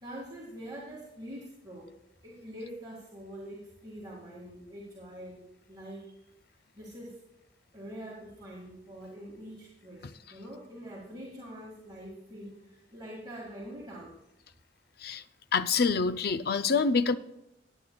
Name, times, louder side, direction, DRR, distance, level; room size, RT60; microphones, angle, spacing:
voice 1, 0.0-1.9 2.2-5.4 5.7-6.2 6.7-7.2 7.7-14.2, equal, 25° right, 2.1 m, -44 dB
voice 2, 15.5-17.2, left 5 dB, 60° left, 0.5 m, -26 dB
19.0 x 9.1 x 2.3 m
head